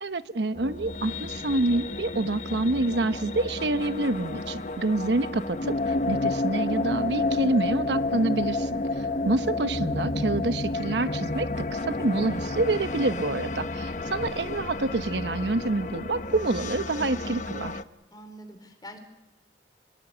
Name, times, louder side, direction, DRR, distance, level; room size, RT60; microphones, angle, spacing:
voice 1, 0.0-5.8 6.1-17.8, right 2 dB, 75° right, 11 dB, 1.0 m, -27 dB
sound 1, 0.6-17.8, left 2 dB, 45° left, 1.0 m, -31 dB
voice 2, 4.3-4.8 9.0-9.4 13.8-14.1 18.1-19.0, equal, 25° left, 7 dB, 4.1 m, -46 dB
27.0 x 21.5 x 8.1 m, 1.1 s
head